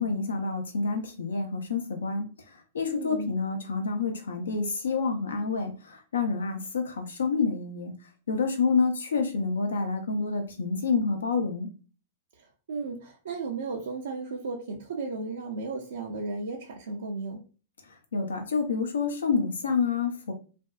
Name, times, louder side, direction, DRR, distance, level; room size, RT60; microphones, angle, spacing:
voice 1, 0.0-7.9 8.3-11.7 18.1-20.3, left 4 dB, 85° left, 5 dB, 0.6 m, -28 dB
voice 2, 2.9-3.3 12.4-17.4, right 3 dB, 80° right, 0 dB, 0.5 m, -35 dB
2.5 x 2.3 x 2.3 m, 0.36 s
hypercardioid pair, 115°, 0 cm